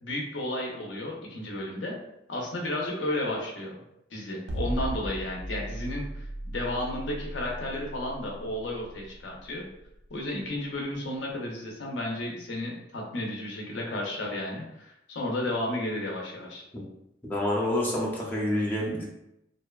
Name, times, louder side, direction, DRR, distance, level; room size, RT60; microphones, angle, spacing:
voice 1, 0.0-1.9 2.3-3.8 4.1-9.6 10.1-16.6, left 1 dB, 80° left, -1 dB, 0.5 m, -33 dB
sound 1, 4.5-10.7, equal, 70° right, 0.3 m, -36 dB
voice 2, 17.2-19.0, left 1 dB, 10° left, -5 dB, 0.5 m, -28 dB
2.6 x 2.1 x 2.2 m, 0.82 s
head